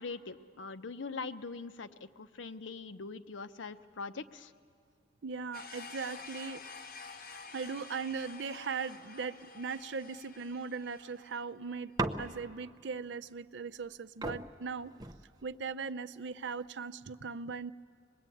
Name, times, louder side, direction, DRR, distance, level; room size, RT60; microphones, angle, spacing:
voice 1, 0.0-4.5, left 4 dB, 85° left, 11 dB, 0.7 m, -42 dB
voice 2, 5.2-6.6 7.5-14.9 15.4-17.7, right 5 dB, 70° right, 12 dB, 0.5 m, -39 dB
sound 1, 5.5-11.4, left 4 dB, 50° left, 1.3 m, -49 dB
sound 2, 12.0-12.7 13.8-13.9 14.2-15.7 16.5-16.9, right 2 dB, 20° right, 0.7 m, -38 dB
24.5 x 20.5 x 9.1 m, 2.2 s
head